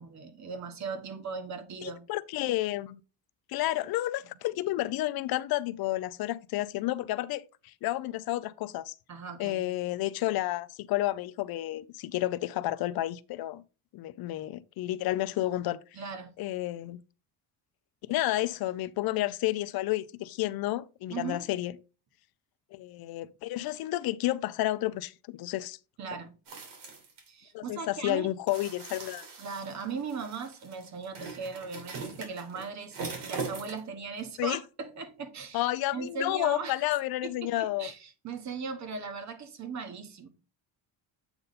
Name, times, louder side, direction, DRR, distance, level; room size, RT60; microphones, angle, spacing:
voice 1, 0.0-2.0 9.1-9.7 15.9-16.3 21.1-21.4 26.0-26.3 27.3-28.3 29.4-35.7 35.9-36.8 37.2-40.3, right 5 dB, 40° right, 1.1 m, -38 dB
voice 2, 1.8-3.0 3.5-8.9 9.4-13.6 13.9-15.8 16.4-17.0 18.1-21.7 22.7-25.8 27.5-29.2 34.4-34.6 35.5-37.9, left 15 dB, 60° left, 0.6 m, -31 dB
sound 1, 26.5-27.3 28.5-33.9 34.2-34.3, right 4 dB, 75° right, 2.9 m, -41 dB
8.0 x 3.9 x 4.1 m
cardioid pair, 160°, 42 cm